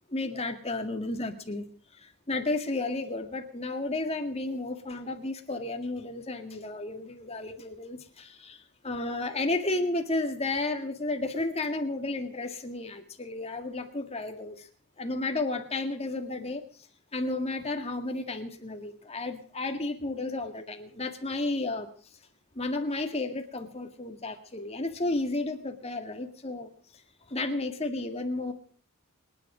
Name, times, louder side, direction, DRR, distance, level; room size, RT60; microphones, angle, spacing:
voice 1, 0.1-1.6 1.9-14.7 15.0-16.6 17.1-21.9 22.6-26.7 27.3-28.5, left 2 dB, 30° left, 5 dB, 1.9 m, -32 dB
27.5 x 10.0 x 5.0 m, 0.43 s
head